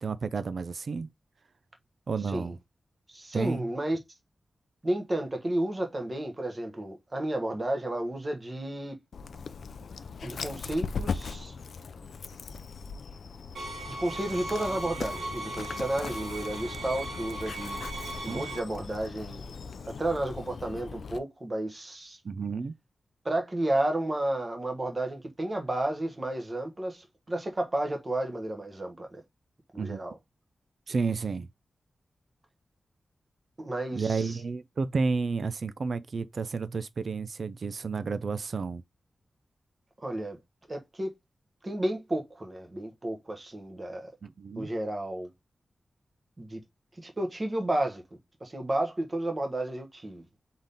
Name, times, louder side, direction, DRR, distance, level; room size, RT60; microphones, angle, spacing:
voice 1, 0.0-1.1 2.1-2.6 3.3-3.7 18.3-18.4 22.2-22.7 29.8-30.0 30.9-31.5 33.9-38.8 44.2-44.7, right 4 dB, 55° right, 0.4 m, -31 dB
voice 2, 3.1-4.0 4.8-9.0 10.2-11.6 13.9-17.8 18.2-19.4 19.9-22.2 23.2-29.2 29.7-30.2 33.6-34.4 40.0-40.4 40.7-41.1 41.6-44.1 44.6-45.3 46.4-46.6 47.0-48.0 48.4-50.2, right 1 dB, 25° right, 1.3 m, -32 dB
Dog, 9.1-21.2, left 5 dB, 70° left, 0.4 m, -39 dB
sound 1, 13.5-18.6, right 2 dB, 80° right, 1.4 m, -38 dB
4.0 x 3.8 x 3.4 m
wide cardioid pair, 135°, 0 cm